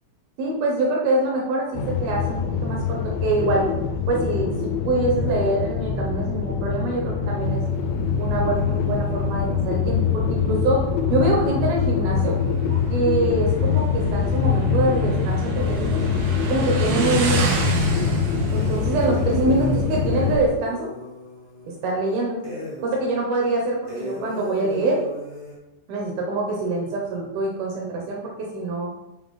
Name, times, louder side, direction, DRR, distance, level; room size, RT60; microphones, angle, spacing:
voice 1, 0.4-1.7 2.0-3.7 4.1-7.6 8.2-10.8 11.1-12.4 12.9-16.0 16.4-17.5 18.5-20.9 21.8-22.4 22.8-25.0 25.9-28.9, right 2 dB, 70° right, -2 dB, 2.4 m, -24 dB
sound 1, 1.7-20.5, left 6 dB, 80° left, 2.7 m, -24 dB
Motorcycle, 7.4-20.3, right 4 dB, 90° right, 1.9 m, -31 dB
sound 2, 15.6-17.5 18.5-22.0 22.4-23.0 23.3-23.4 23.9-25.6, left 2 dB, 45° left, 0.6 m, -37 dB
7.9 x 4.5 x 3.7 m, 0.96 s
omnidirectional pair, 5.4 m